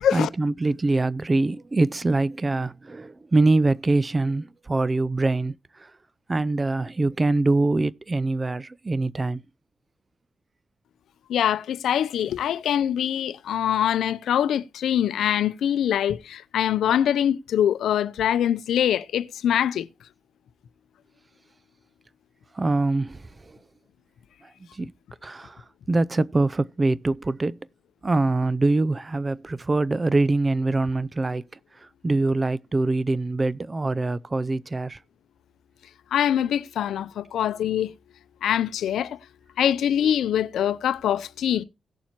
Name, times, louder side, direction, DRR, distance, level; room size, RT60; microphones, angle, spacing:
voice 1, 0.1-5.9 6.3-9.4 22.5-23.6 24.4-24.9 25.2-27.6 28.0-31.4 31.7-35.0, right 2 dB, 30° right, 0.5 m, -24 dB
voice 2, 11.3-19.9 36.1-37.9 38.4-39.2 39.6-41.6, left 10 dB, 85° left, 0.6 m, -23 dB
17.5 x 7.1 x 2.9 m
cardioid pair, 65°, 0 cm